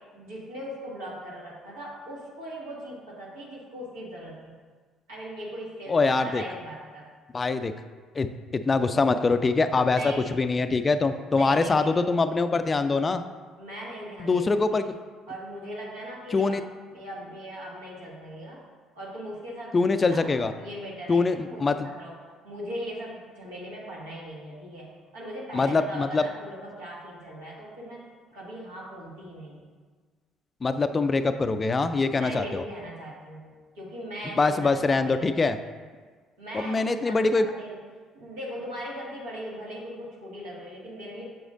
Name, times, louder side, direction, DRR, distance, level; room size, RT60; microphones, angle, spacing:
voice 1, 0.1-4.6 5.1-7.1 9.9-10.3 11.3-12.0 13.6-14.8 15.3-16.6 16.9-18.6 19.0-22.2 22.4-28.0 28.3-29.6 32.1-35.7 36.4-37.8 38.1-41.2, equal, 75° right, -6 dB, 1.9 m, -39 dB
voice 2, 5.9-6.4 7.3-7.7 8.2-8.3 8.5-10.0 10.4-13.2 14.2-14.8 16.3-16.6 19.7-20.5 21.1-21.8 25.5-26.2 30.6-32.6 34.4-35.6 36.5-37.5, left 3 dB, 30° left, 10 dB, 0.4 m, -23 dB
7.9 x 7.1 x 2.6 m, 1.5 s
figure-of-eight pair, 50°, 0 cm